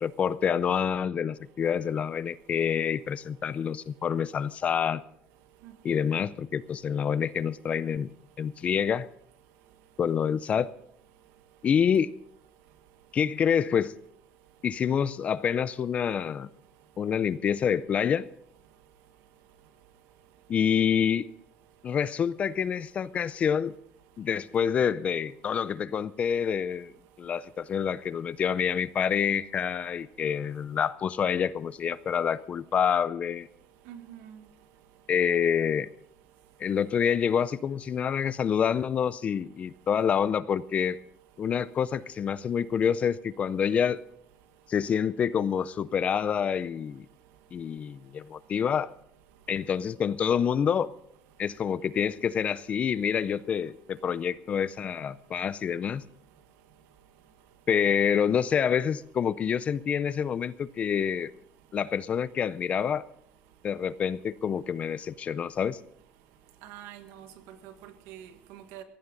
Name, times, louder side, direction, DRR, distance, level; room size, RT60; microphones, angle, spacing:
voice 1, 0.0-5.0 5.8-8.1 8.4-9.1 10.0-10.7 11.6-12.1 13.1-13.9 14.6-16.5 17.0-18.3 20.5-21.3 21.8-23.7 24.2-26.9 27.2-33.5 35.1-35.9 36.6-41.0 41.4-44.0 44.7-47.1 47.5-48.9 49.5-50.9 51.4-56.0 57.7-61.3 61.7-63.0 63.6-65.8, left 7 dB, 30° left, 0.4 m, -27 dB
voice 2, 5.6-6.0 33.9-34.4 66.6-68.8, right 10 dB, 85° right, 1.6 m, -46 dB
17.0 x 15.0 x 3.9 m
cardioid pair, 150°, 4 cm